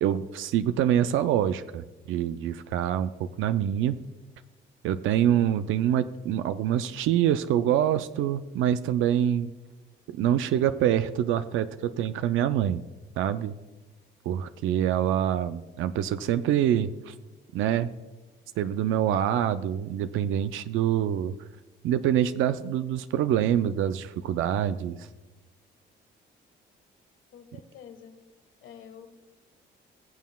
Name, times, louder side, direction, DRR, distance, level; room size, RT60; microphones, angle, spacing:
voice 1, 0.0-4.0 4.8-9.5 10.1-12.8 13.2-13.5 14.3-17.1 17.5-17.9 18.6-21.3 21.8-25.1, right 10 dB, 80° right, 11 dB, 0.4 m, -25 dB
voice 2, 27.3-28.2 28.6-29.1, left 8 dB, 90° left, 6 dB, 1.4 m, -47 dB
20.5 x 7.3 x 2.3 m, 1.2 s
cardioid pair, 90°, 20 cm